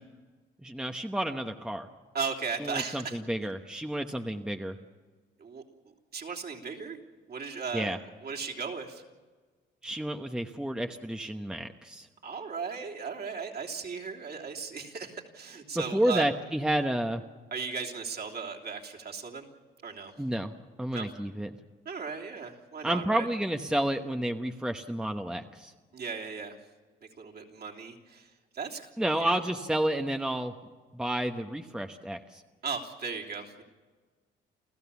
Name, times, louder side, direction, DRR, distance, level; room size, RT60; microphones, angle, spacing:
voice 1, 0.6-1.9 2.6-4.8 7.7-8.0 9.8-12.1 15.7-17.2 20.2-20.5 20.8-21.5 22.8-25.7 29.0-30.5 30.9-32.4, right 1 dB, 5° right, 5 dB, 1.0 m, -30 dB
voice 2, 2.1-3.2 5.4-5.6 6.1-7.0 7.3-9.0 12.2-16.3 17.5-19.5 19.8-20.1 20.9-21.1 21.8-23.3 25.9-26.6 27.2-28.9 29.2-29.4 32.6-33.6, right 5 dB, 50° right, 0 dB, 3.4 m, -37 dB
29.5 x 15.0 x 7.1 m, 1.4 s
cardioid pair, 90°, 20 cm